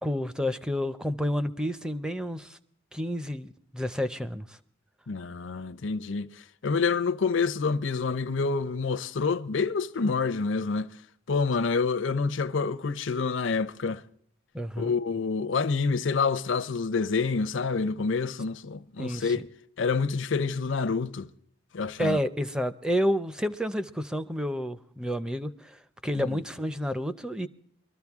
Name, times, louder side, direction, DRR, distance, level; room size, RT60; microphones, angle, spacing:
voice 1, 0.0-2.6 2.9-4.6 14.5-14.9 19.0-19.3 22.0-27.5, equal, 5° right, 0.5 m, -30 dB
voice 2, 5.1-10.9 11.3-14.0 14.8-19.5 19.8-21.3 21.7-22.2 26.2-26.4, left 4 dB, 65° left, 0.6 m, -27 dB
22.0 x 13.5 x 3.5 m
head